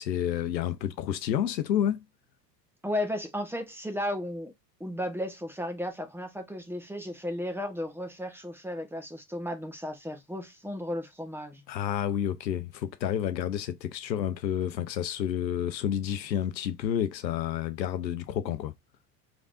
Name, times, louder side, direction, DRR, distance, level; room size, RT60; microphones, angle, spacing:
voice 1, 0.0-2.0 11.7-18.7, left 10 dB, 85° left, 0.8 m, -30 dB
voice 2, 2.8-4.5 4.8-11.6, left 1 dB, 5° right, 1.2 m, -34 dB
3.9 x 3.4 x 2.5 m
hypercardioid pair, 85°, 50 cm